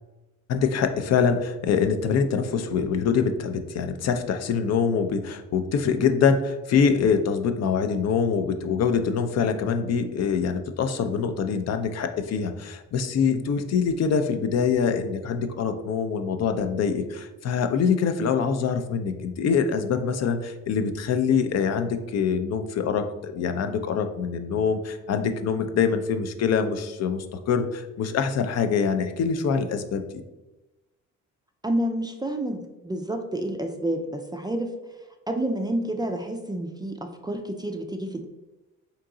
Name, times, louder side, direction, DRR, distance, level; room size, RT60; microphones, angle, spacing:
voice 1, 0.5-30.0, left 6 dB, 60° left, 7 dB, 0.5 m, -24 dB
voice 2, 31.6-34.7 35.3-38.3, right 1 dB, 15° right, 5 dB, 0.3 m, -29 dB
3.7 x 2.8 x 3.7 m, 1.1 s
cardioid pair, 90°, 30 cm